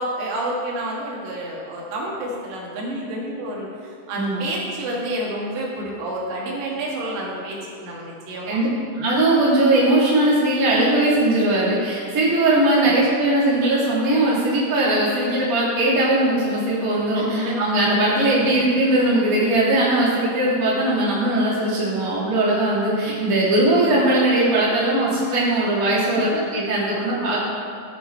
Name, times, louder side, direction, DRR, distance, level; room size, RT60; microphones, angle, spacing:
voice 1, 0.0-3.7 4.1-8.6 17.2-17.6 18.4-18.7 26.1-26.4, right 1 dB, 90° right, -4 dB, 4.4 m, -29 dB
voice 2, 8.5-27.4, right 1 dB, 25° right, -7 dB, 2.1 m, -19 dB
12.0 x 8.9 x 4.5 m, 2.4 s
omnidirectional pair, 5.5 m